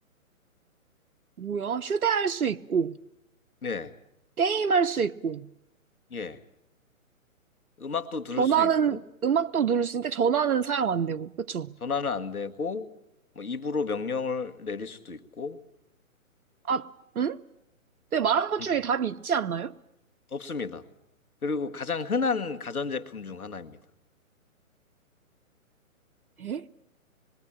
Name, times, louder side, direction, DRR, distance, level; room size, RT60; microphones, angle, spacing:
voice 1, 1.4-2.9 4.4-5.5 8.4-11.7 16.7-17.4 18.1-19.7 26.4-26.6, right 7 dB, 85° right, 0.9 m, -26 dB
voice 2, 3.6-3.9 6.1-6.4 7.8-9.0 11.8-12.9 13.4-15.6 20.3-20.8 21.4-23.8, left 4 dB, 90° left, 2.0 m, -31 dB
26.0 x 22.5 x 8.8 m
hypercardioid pair, 140°, 42 cm